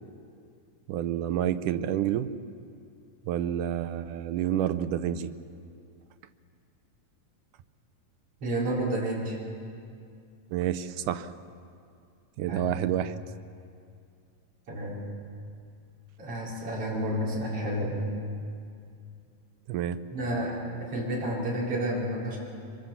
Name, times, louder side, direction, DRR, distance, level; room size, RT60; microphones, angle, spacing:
voice 1, 0.9-2.3 3.3-5.3 10.5-11.3 12.4-13.1 19.7-20.0, right 11 dB, 85° right, 11 dB, 2.3 m, -29 dB
voice 2, 8.4-9.4 12.5-12.7 14.7-15.0 16.2-18.1 20.1-22.4, right 1 dB, 45° right, -5 dB, 5.2 m, -30 dB
25.0 x 24.0 x 7.0 m, 2.4 s
omnidirectional pair, 3.6 m